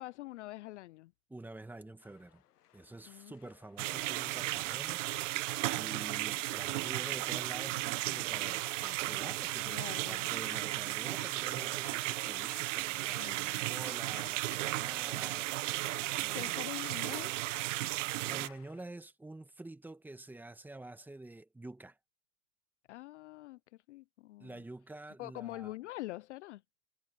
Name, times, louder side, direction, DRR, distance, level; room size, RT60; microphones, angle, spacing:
voice 1, 0.0-1.1 3.0-3.3 9.6-10.4 13.1-13.5 16.0-17.3 22.9-24.6 25.2-26.6, left 18 dB, 50° left, 0.5 m, -45 dB
voice 2, 1.3-2.4 2.7-5.0 5.7-15.5 16.2-16.5 18.2-22.0 24.4-25.7, right 2 dB, 5° right, 1.5 m, -48 dB
sound 1, 2.0-18.9, left 12 dB, 80° left, 1.4 m, -58 dB
sound 2, 3.8-18.5, right 18 dB, 55° right, 0.5 m, -35 dB
hypercardioid pair, 130°, 46 cm